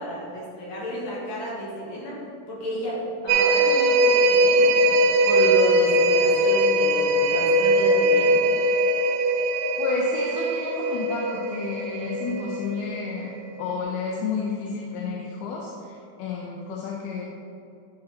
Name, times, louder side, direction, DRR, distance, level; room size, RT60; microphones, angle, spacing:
voice 1, 0.0-2.2 2.5-4.9 5.2-8.4, equal, 65° left, -6 dB, 2.9 m, -31 dB
sound 1, 3.3-13.0 13.4-13.5, right 1 dB, 80° right, 1.7 m, -21 dB
voice 2, 9.8-13.3 13.6-17.3, left 4 dB, 80° left, -2 dB, 2.1 m, -31 dB
9.7 x 4.2 x 3.9 m, 2.7 s
omnidirectional pair, 3.5 m